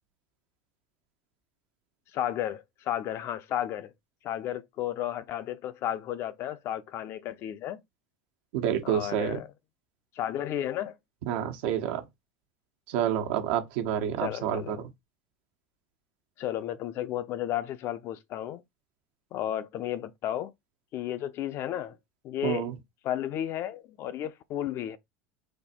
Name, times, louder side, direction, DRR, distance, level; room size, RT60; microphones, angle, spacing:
voice 1, 2.1-3.9 4.2-7.8 8.8-9.5 10.1-11.0 14.2-14.8 16.4-18.6 19.3-20.5 20.9-22.0 22.2-22.7 23.0-25.0, left 11 dB, 50° left, 0.7 m, -33 dB
voice 2, 8.5-9.4 11.3-12.0 12.9-14.8 22.4-22.7, right 9 dB, 75° right, 1.2 m, -28 dB
4.4 x 2.6 x 4.4 m
supercardioid pair, 110°, 6 cm